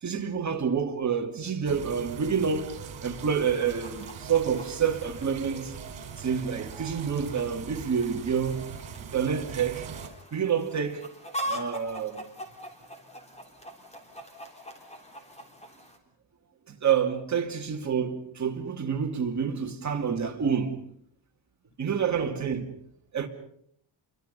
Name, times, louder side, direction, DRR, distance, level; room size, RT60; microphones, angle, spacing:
voice 1, 0.0-5.7 6.2-8.6 9.1-9.9 10.3-11.1 11.4-12.2 16.7-20.8 21.8-22.7 23.1-23.3, right 7 dB, 35° right, 2.6 m, -28 dB
sound 1, 1.6-10.1, right 7 dB, 65° right, 5.0 m, -41 dB
Chicken rooster, 3.0-16.0, equal, 15° left, 3.5 m, -43 dB
voice 2, 14.2-15.8 22.1-22.3, left 1 dB, 80° left, 4.1 m, -58 dB
30.0 x 24.5 x 5.5 m
wide cardioid pair, 180°, 49 cm